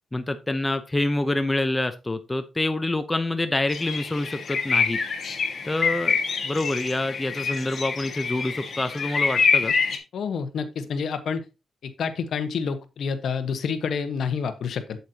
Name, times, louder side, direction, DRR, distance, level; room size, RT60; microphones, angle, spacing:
voice 1, 0.1-5.0 5.6-6.2 6.4-9.7, left 2 dB, 15° left, 0.6 m, -26 dB
sound 1, 3.7-10.0, left 5 dB, 45° left, 1.7 m, -26 dB
voice 2, 10.1-11.4 11.8-15.0, left 6 dB, 65° left, 1.1 m, -28 dB
8.3 x 8.1 x 2.8 m
wide cardioid pair, 140°, 0 cm